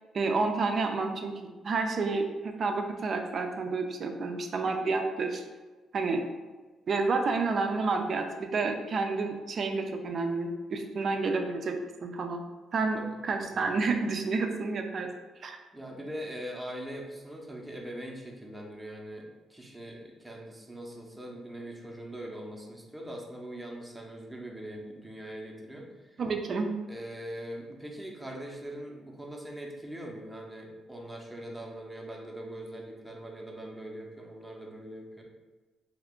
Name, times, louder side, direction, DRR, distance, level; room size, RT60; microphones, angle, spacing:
voice 1, 0.1-5.4 5.9-6.2 6.9-11.7 12.0-12.4 12.7-13.0 13.2-15.1 15.4-15.6 26.2-26.7, right 3 dB, 50° right, 4 dB, 0.4 m, -29 dB
voice 2, 15.7-26.2 26.9-35.2, right 1 dB, 10° right, -1 dB, 0.7 m, -42 dB
2.8 x 2.4 x 3.6 m, 1.3 s
cardioid pair, 90°, 0 cm